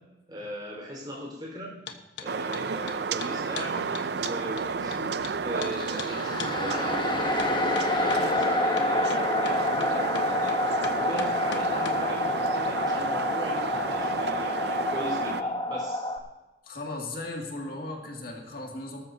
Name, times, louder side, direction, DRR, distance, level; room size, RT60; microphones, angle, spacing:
voice 1, 0.3-1.9 2.2-16.1, equal, 25° right, -2 dB, 4.4 m, -38 dB
sound 1, 1.9-2.3 2.5-5.3 5.6-5.7 6.0-6.1 6.4-6.5 7.4-12.0, left 5 dB, 80° left, 1.1 m, -38 dB
sound 2, 2.3-15.4, right 5 dB, 65° right, 0.5 m, -32 dB
sound 3, 5.7-16.2, left 2 dB, 25° left, 1.1 m, -28 dB
voice 2, 16.6-19.0, left 2 dB, 55° left, 0 dB, 2.2 m, -36 dB
19.5 x 13.5 x 2.8 m, 1.2 s
head